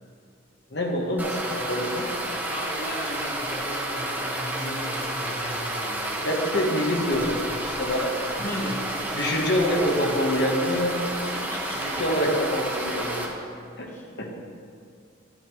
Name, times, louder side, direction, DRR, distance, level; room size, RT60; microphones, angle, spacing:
voice 1, 0.7-2.1 6.2-8.2 9.1-11.0 11.7-13.3 13.8-13.9 14.2-14.4, equal, 60° left, 0 dB, 1.6 m, -26 dB
sound 1, 1.2-13.3, right 1 dB, 10° right, 1.4 m, -31 dB
voice 2, 2.5-6.3 8.4-9.3 11.3-12.0 13.9-14.3, left 1 dB, 40° left, -5 dB, 1.3 m, -36 dB
11.5 x 10.5 x 4.9 m, 2.3 s
head